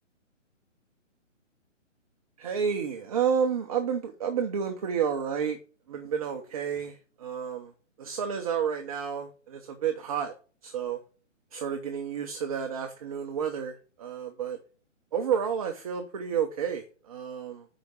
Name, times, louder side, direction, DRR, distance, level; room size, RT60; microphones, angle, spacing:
voice 1, 2.4-5.6 5.9-7.7 8.0-10.3 10.6-11.0 11.5-14.6 15.1-17.6, right 7 dB, 30° right, 5 dB, 0.8 m, -30 dB
10.0 x 4.9 x 5.1 m, 0.38 s
hypercardioid pair, 160°, 38 cm